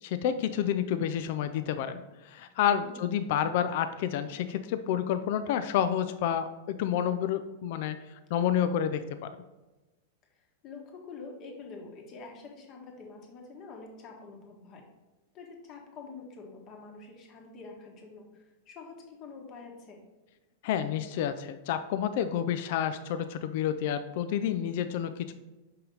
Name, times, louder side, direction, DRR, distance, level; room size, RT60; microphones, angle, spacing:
voice 1, 0.0-8.0 8.3-9.0 20.6-25.3, left 9 dB, 60° left, 11 dB, 0.4 m, -29 dB
voice 2, 10.3-14.8 15.3-20.0, left 4 dB, 40° left, 1 dB, 1.6 m, -46 dB
5.6 x 5.4 x 3.9 m, 1.1 s
hypercardioid pair, 100°, 0 cm